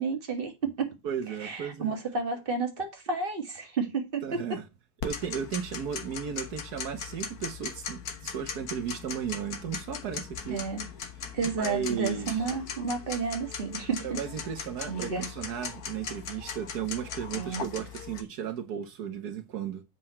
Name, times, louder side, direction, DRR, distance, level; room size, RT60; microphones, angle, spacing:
voice 1, 0.0-0.9 1.4-4.2 10.5-10.8 11.3-14.1 14.9-15.3 17.3-17.7, right 4 dB, 35° right, 2.1 m, -31 dB
voice 2, 1.0-1.9 4.2-4.6 5.0-10.6 11.6-12.5 14.0-19.8, right 8 dB, 80° right, 1.5 m, -35 dB
Tick-tock, 5.0-18.2, left 6 dB, 75° left, 1.8 m, -39 dB
7.8 x 6.1 x 4.3 m
omnidirectional pair, 1.7 m